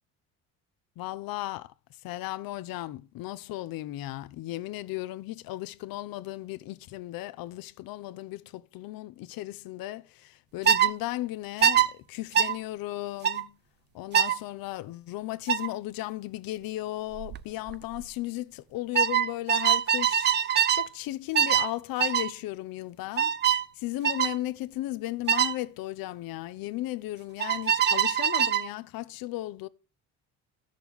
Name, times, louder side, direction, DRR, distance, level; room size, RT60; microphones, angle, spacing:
voice 1, 1.0-1.7 2.0-13.5 13.9-23.3 23.8-29.7, left 16 dB, 65° left, 0.7 m, -35 dB
sound 1, 10.7-10.9 11.6-11.9 12.4-12.5 13.2-13.4 14.1-14.4 15.5-15.7 17.2-17.4 17.7-18.0 19.0-20.9 21.4-21.7 22.0-22.3 23.2-23.6 24.0-24.4 25.3-25.5 27.4-28.7, right 9 dB, 30° right, 0.4 m, -23 dB
13.0 x 6.6 x 3.6 m
cardioid pair, 120°, 37 cm